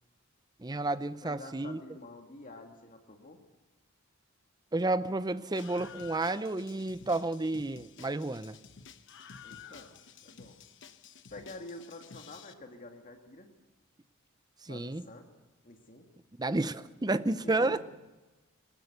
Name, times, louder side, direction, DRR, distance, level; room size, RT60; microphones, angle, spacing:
voice 1, 0.6-1.8 4.7-8.6 14.6-15.1 16.4-17.8, right 2 dB, 20° right, 14 dB, 0.6 m, -31 dB
voice 2, 1.2-3.4 9.4-10.6 11.3-13.5 14.6-15.3 15.6-16.0 17.4-17.8, left 2 dB, 40° left, 3 dB, 2.4 m, -48 dB
Screaming, 5.6-12.5, left 6 dB, 60° left, 1.0 m, -52 dB
22.5 x 19.0 x 6.8 m, 1.1 s
head